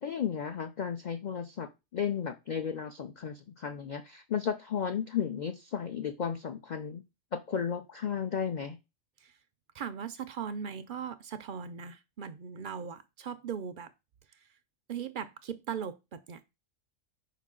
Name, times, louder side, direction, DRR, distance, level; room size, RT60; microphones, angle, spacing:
voice 1, 0.0-7.0 7.3-8.8, left 7 dB, 60° left, 0.5 m, -34 dB
voice 2, 9.7-13.9 14.9-16.4, right 7 dB, 60° right, 0.5 m, -39 dB
5.6 x 4.7 x 3.7 m
omnidirectional pair, 1.3 m